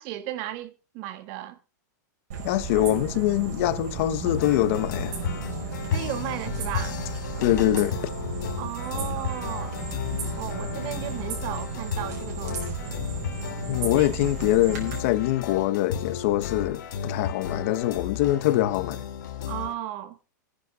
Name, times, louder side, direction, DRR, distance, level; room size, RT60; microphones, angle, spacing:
voice 1, 0.0-1.6 5.9-7.0 8.6-9.8 10.3-13.0 14.0-14.1 19.5-20.2, right 13 dB, 35° right, 1.5 m, -35 dB
sound 1, 2.3-15.0, right 6 dB, 55° right, 5.6 m, -35 dB
voice 2, 2.4-5.2 7.4-8.0 13.7-19.1, left 14 dB, 45° left, 1.0 m, -24 dB
sound 2, 4.2-19.7, left 8 dB, 70° left, 2.7 m, -33 dB
26.0 x 10.0 x 2.4 m
supercardioid pair, 160°, 10 cm